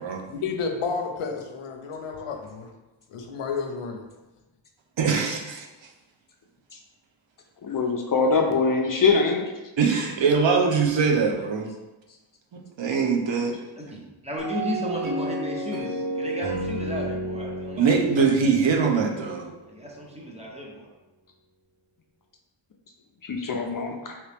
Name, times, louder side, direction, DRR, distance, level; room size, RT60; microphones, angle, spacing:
voice 1, 0.3-2.7 3.1-4.0, left 5 dB, 85° left, 4 dB, 0.6 m, -31 dB
voice 2, 5.0-5.7 9.8-11.7 12.5-13.6 17.8-19.5, right 5 dB, 65° right, 1 dB, 0.6 m, -22 dB
voice 3, 7.6-9.5 23.2-24.2, left 4 dB, 45° left, 2 dB, 0.4 m, -23 dB
voice 4, 13.8-17.9 19.7-20.9, equal, 15° right, -2 dB, 0.6 m, -34 dB
sound 1, 14.4-19.5, right 1 dB, 80° right, 1.0 m, -32 dB
3.0 x 2.9 x 3.3 m, 1.1 s
wide cardioid pair, 95°, 50 cm